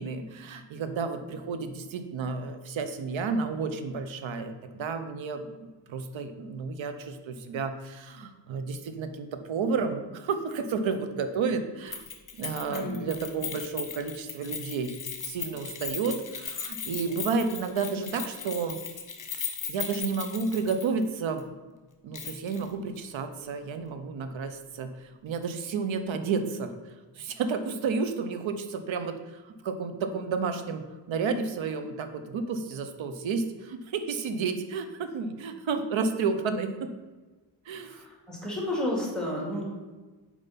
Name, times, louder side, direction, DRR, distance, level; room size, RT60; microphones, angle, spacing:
voice 1, 0.0-12.0 12.4-15.0 15.2-18.8 19.7-21.4 22.0-36.9 37.7-38.0, right 5 dB, 80° right, 8 dB, 0.8 m, -31 dB
Keys jangling, 11.9-21.1 21.4-21.5 22.1-22.7 23.0-23.1, left 6 dB, 40° left, 1.2 m, -37 dB
voice 2, 12.7-13.0 37.9-39.6, left 1 dB, ahead, -3 dB, 2.3 m, -31 dB
5.4 x 4.8 x 5.7 m, 1.3 s
cardioid pair, 90°, 46 cm